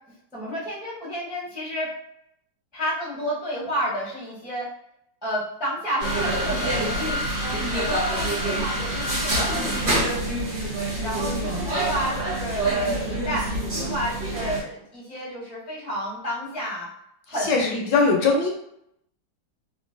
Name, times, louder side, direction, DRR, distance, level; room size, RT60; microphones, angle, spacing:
voice 1, 0.3-1.9 2.7-4.7 5.2-7.2 7.7-10.0 11.0-16.9 17.3-17.5, equal, 5° right, -7 dB, 0.5 m, -30 dB
sound 1, 6.0-14.6, right 1 dB, 60° right, 1.8 m, -26 dB
voice 2, 11.2-11.7 17.4-18.5, left 4 dB, 75° left, 1 dB, 1.1 m, -22 dB
3.6 x 2.1 x 2.5 m, 0.75 s
omnidirectional pair, 2.0 m